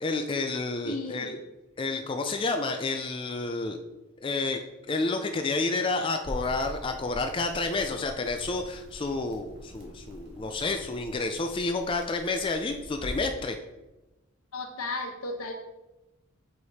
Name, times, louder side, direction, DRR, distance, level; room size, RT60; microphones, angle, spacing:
voice 1, 0.0-1.4 1.8-3.8 4.2-4.6 4.9-13.6, left 3 dB, 25° left, 5 dB, 0.3 m, -30 dB
voice 2, 0.8-1.4 14.5-15.5, left 2 dB, 90° left, 4 dB, 0.9 m, -34 dB
sound 1, 6.2-13.3, equal, 50° right, 1.5 m, -43 dB
4.9 x 4.7 x 4.1 m, 1.0 s
head